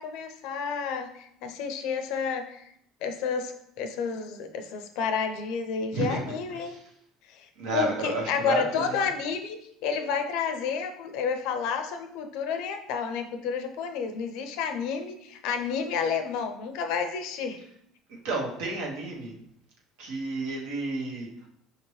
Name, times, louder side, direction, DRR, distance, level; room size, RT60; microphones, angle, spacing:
voice 1, 0.0-2.6 3.0-6.7 7.3-7.5 7.7-9.6 9.8-17.6, left 6 dB, 75° left, 7 dB, 0.5 m, -30 dB
voice 2, 5.9-6.3 6.6-6.8 7.6-9.0 18.1-19.4 20.0-21.3, right 2 dB, 80° right, -1 dB, 1.0 m, -31 dB
5.1 x 2.8 x 3.1 m, 0.72 s
supercardioid pair, 85°, 0 cm